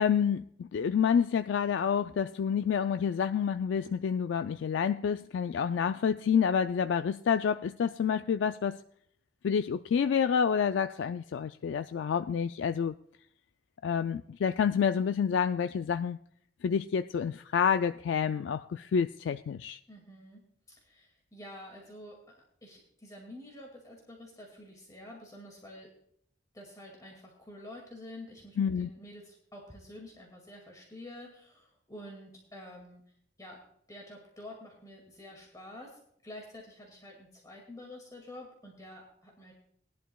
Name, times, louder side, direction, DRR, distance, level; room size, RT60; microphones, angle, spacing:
voice 1, 0.0-8.8 9.4-12.9 13.8-16.2 16.6-19.8 28.6-28.9, left 7 dB, 70° left, 10 dB, 0.3 m, -28 dB
voice 2, 19.9-22.2 22.6-25.9 26.5-33.0 33.4-33.6 33.9-39.5, left 1 dB, 20° left, -1 dB, 2.2 m, -48 dB
19.5 x 11.0 x 2.3 m, 0.68 s
head